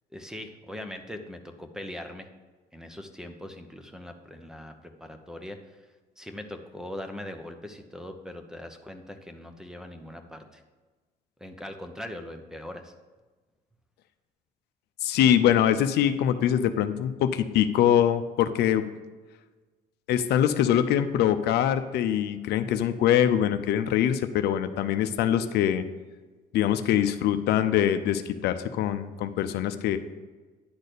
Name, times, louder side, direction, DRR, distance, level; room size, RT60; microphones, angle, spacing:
voice 1, 0.1-2.3 2.7-5.9 6.2-10.6 11.4-12.9, left 1 dB, 5° right, 6 dB, 0.8 m, -41 dB
voice 2, 15.0-18.9 20.1-25.8 26.5-30.0, left 10 dB, 75° left, 10 dB, 0.6 m, -23 dB
10.5 x 4.1 x 6.7 m, 1.3 s
cardioid pair, 110°, 17 cm